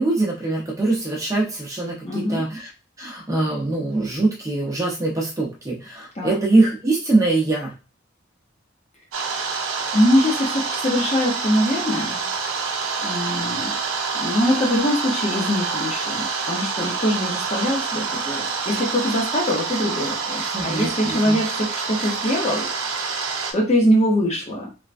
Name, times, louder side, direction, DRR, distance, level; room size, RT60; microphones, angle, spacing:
voice 1, 0.0-2.7 3.0-7.7 20.5-21.4, right 2 dB, 15° right, -2 dB, 0.7 m, -23 dB
voice 2, 2.0-2.4 6.2-6.4 9.9-12.2 13.0-13.7 14.2-22.7 23.5-24.7, equal, 30° left, -1 dB, 0.7 m, -22 dB
sound 1, 9.1-23.5, right 5 dB, 85° right, 0.6 m, -27 dB
3.3 x 2.2 x 2.5 m, 0.33 s
head